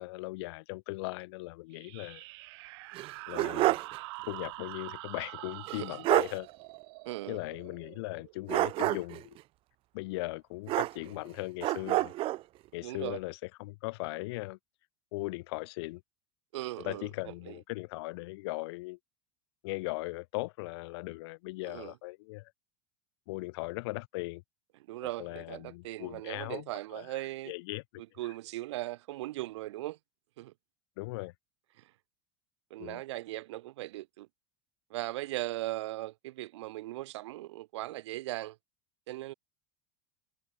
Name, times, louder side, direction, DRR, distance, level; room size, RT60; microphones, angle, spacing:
voice 1, 0.0-2.2 3.3-3.8 4.2-6.5 7.3-9.4 9.9-12.1 12.7-14.6 15.1-16.0 16.8-19.0 19.6-22.5 23.3-24.4 25.2-27.8 28.2-28.3 31.0-31.3 32.8-33.0, left 22 dB, 65° left, 4.1 m, -38 dB
sound 1, 1.7-9.0, right 24 dB, 65° right, 5.7 m, -46 dB
sound 2, 2.9-4.0 4.3-4.4 5.7-5.8 6.0-6.4 8.5-9.2 10.7-11.3 11.6-12.4, right 17 dB, 40° right, 3.3 m, -28 dB
voice 2, 7.1-7.4 12.8-13.2 16.5-17.1 21.7-21.9 24.9-27.5 28.2-30.0 30.4-30.5 32.7-34.3 34.9-38.6 39.1-39.3, right 17 dB, 85° right, 2.1 m, -38 dB
supercardioid pair, 155°, 14 cm